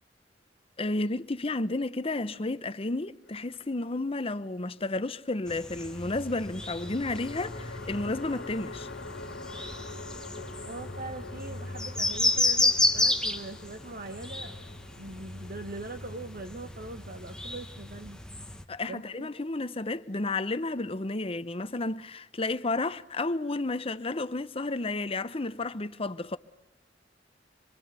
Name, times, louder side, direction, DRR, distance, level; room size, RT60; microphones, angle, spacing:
voice 1, 0.8-8.9 18.7-26.4, left 2 dB, 30° left, 0.8 m, -32 dB
sound 1, 3.2-4.1 6.4-17.7, left 3 dB, 80° left, 1.5 m, -46 dB
sound 2, 5.5-18.6, left 2 dB, 5° left, 1.2 m, -32 dB
voice 2, 10.7-14.6 15.0-18.2 18.8-19.3, right 2 dB, 50° right, 1.2 m, -41 dB
25.0 x 24.5 x 8.2 m
head